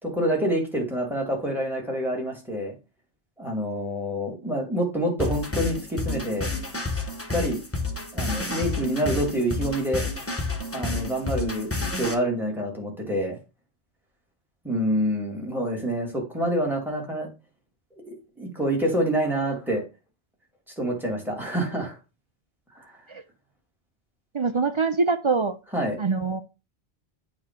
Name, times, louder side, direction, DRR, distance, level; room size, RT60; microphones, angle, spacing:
voice 1, 0.0-2.7 3.4-6.5 6.9-7.0 7.3-7.6 8.1-10.1 10.7-13.4 14.6-17.3 18.1-19.8 20.8-22.0 22.8-22.9 25.7-26.0, equal, ahead, -1 dB, 2.3 m, -27 dB
sound 1, 5.2-12.1, left 2 dB, 15° left, 0.9 m, -30 dB
voice 2, 24.3-25.5 26.0-26.4, right 4 dB, 50° right, 9 dB, 0.3 m, -24 dB
8.7 x 3.0 x 5.8 m, 0.29 s
omnidirectional pair, 1.1 m